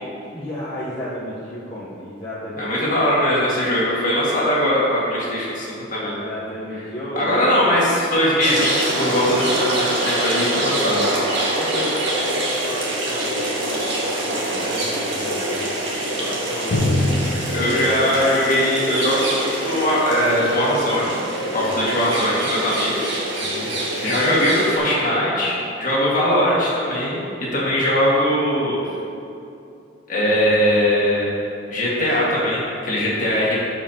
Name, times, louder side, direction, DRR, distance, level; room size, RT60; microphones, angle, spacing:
voice 1, 0.3-2.7 6.0-7.5 11.5-15.7 16.0-17.2 21.6-22.0 23.4-23.8, equal, 25° left, -10 dB, 1.0 m, -33 dB
voice 2, 2.6-6.1 7.2-11.0 17.3-21.2 21.5-23.2 24.0-27.2 27.5-28.9 30.1-31.4 31.7-33.6, equal, 40° left, -7 dB, 1.8 m, -20 dB
sound 1, 8.4-24.8, right 1 dB, 65° right, 1.7 m, -25 dB
Drum, 16.7-20.2, left 1 dB, 90° left, 0.9 m, -26 dB
12.5 x 5.3 x 2.9 m, 2.6 s
head